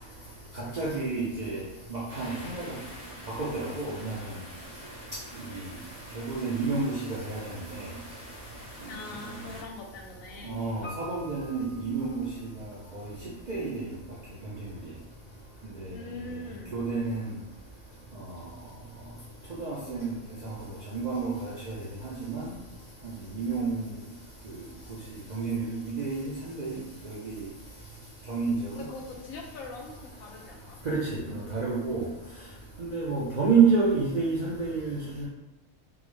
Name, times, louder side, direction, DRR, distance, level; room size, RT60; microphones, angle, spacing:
voice 1, 0.8-1.6 1.9-2.6 3.4-4.1 6.2-7.4 10.4-12.2 12.9-13.0 13.5-13.8 16.7-17.2 19.6-20.1 20.9-21.7 22.0-22.4 23.4-23.8 25.3-26.2 26.6-26.7 27.0-27.4 28.3-28.5 30.9-31.0 31.3-32.0 32.8-35.2, right 5 dB, 55° right, -6 dB, 0.4 m, -28 dB
sound 1, 2.1-9.6, equal, 80° right, 1.9 m, -46 dB
voice 2, 8.9-10.6 15.9-16.7 28.7-30.8, left 3 dB, 80° left, 1 dB, 1.0 m, -42 dB
Piano, 10.8-12.9 13.1-13.2, equal, 45° left, 0.6 m, -47 dB
3.7 x 2.0 x 3.1 m, 0.96 s
omnidirectional pair, 1.4 m